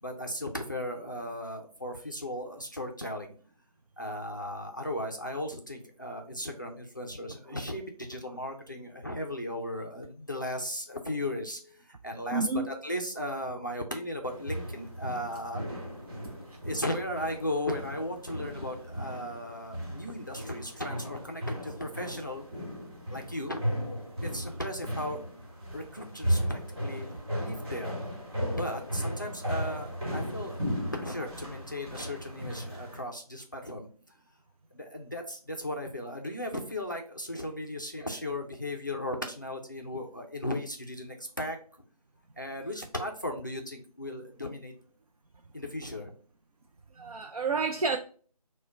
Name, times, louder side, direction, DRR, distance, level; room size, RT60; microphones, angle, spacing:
voice 1, 0.0-3.3 4.0-15.6 16.6-22.5 23.1-23.7 24.2-25.2 25.7-28.1 28.5-30.7 30.9-33.9 34.7-41.6 42.4-44.7 45.5-46.1, left 1 dB, 30° left, 0.4 m, -36 dB
voice 2, 12.3-12.7 47.0-48.0, right 4 dB, 65° right, 0.5 m, -29 dB
sound 1, 14.2-33.0, equal, 40° right, 1.8 m, -36 dB
4.8 x 2.2 x 4.3 m
figure-of-eight pair, 165°, 20 cm